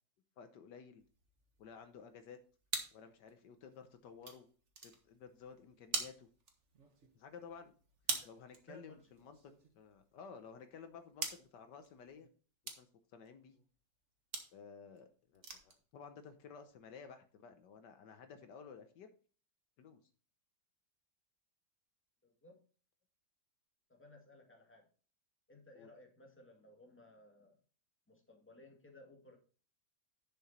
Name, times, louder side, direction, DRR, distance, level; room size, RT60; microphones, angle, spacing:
voice 1, 0.4-1.0 1.6-2.4 2.9-4.5 4.8-6.3 7.1-7.7 8.2-12.3 12.8-12.9 13.1-13.6 14.5-19.1 19.8-20.0 25.7-25.9, left 6 dB, 70° left, 8 dB, 1.5 m, -54 dB
sound 1, 1.0-12.3 12.7-12.9 13.2-13.6 14.3-14.6 15.0-15.1 15.3-15.8 16.0-16.3 16.7-16.8 17.2-17.3, right 4 dB, 40° right, 1.7 m, -45 dB
voice 2, 8.7-9.0 22.2-22.6 23.9-24.9 25.5-27.6 28.1-29.4, left 2 dB, 5° left, 1 dB, 2.0 m, -59 dB
10.5 x 5.9 x 4.3 m, 0.40 s
omnidirectional pair, 2.0 m